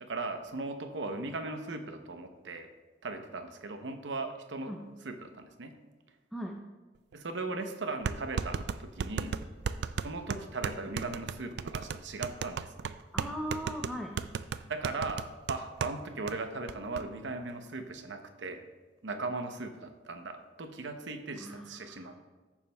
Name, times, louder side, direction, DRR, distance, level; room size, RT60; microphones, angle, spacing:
voice 1, 0.0-2.7 3.0-4.8 5.0-5.7 7.1-9.3 10.0-12.7 14.7-18.6 19.0-22.2, right 3 dB, 80° right, 6 dB, 0.8 m, -38 dB
sound 1, 7.1-7.2 8.0-16.0 16.3-16.4 16.7-17.0, right 6 dB, 65° right, 0.3 m, -35 dB
voice 2, 13.1-14.1 21.4-22.1, equal, ahead, 0 dB, 0.5 m, -39 dB
14.0 x 7.2 x 2.3 m, 1.3 s
head